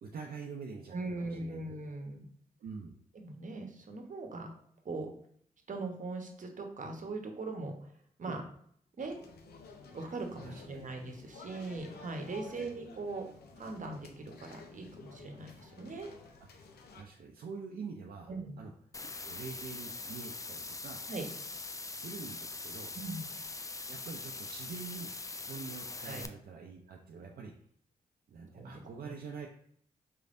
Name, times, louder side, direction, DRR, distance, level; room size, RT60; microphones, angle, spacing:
voice 1, 0.0-1.6 2.6-3.0 8.2-8.4 10.4-10.6 12.4-12.7 16.9-18.3 18.6-18.7 19.0-21.0 22.0-22.9 23.9-25.1 25.4-27.5 28.3-29.5, right 5 dB, 70° right, 0 dB, 0.5 m, -45 dB
voice 2, 0.9-2.3 3.1-4.5 4.8-5.1 5.7-7.7 8.2-8.4 9.0-9.2 9.9-13.3 13.6-16.1 18.3-18.6 21.1-21.2 22.9-23.2 26.0-26.2 28.5-29.1, right 3 dB, 55° right, 4 dB, 0.9 m, -40 dB
sound 1, 9.0-17.0, left 4 dB, 80° left, 0.6 m, -52 dB
sound 2, 18.9-26.2, left 3 dB, 20° left, 0.4 m, -42 dB
4.6 x 3.3 x 2.6 m, 0.64 s
supercardioid pair, 45°, 16 cm